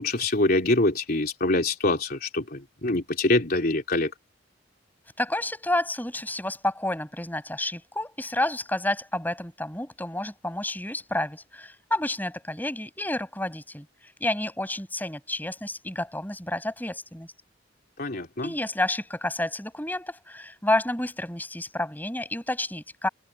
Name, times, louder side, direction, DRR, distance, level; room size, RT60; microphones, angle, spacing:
voice 1, 0.0-4.1 18.0-18.5, left 2 dB, 50° left, 3.3 m, -25 dB
voice 2, 5.2-17.3 18.4-23.1, left 1 dB, 10° left, 6.0 m, -30 dB
head